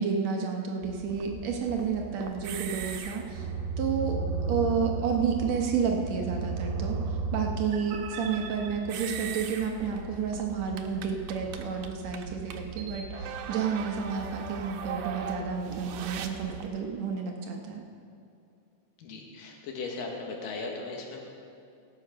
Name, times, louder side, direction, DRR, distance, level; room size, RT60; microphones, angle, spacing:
voice 1, 0.0-3.4 3.8-7.0 7.3-17.8, right 6 dB, 65° right, 2 dB, 1.9 m, -31 dB
sound 1, 0.8-16.7, right 5 dB, 90° right, 2.4 m, -36 dB
voice 2, 19.0-21.2, left 3 dB, 90° left, 1 dB, 3.1 m, -37 dB
17.0 x 7.6 x 5.1 m, 2.6 s
omnidirectional pair, 3.8 m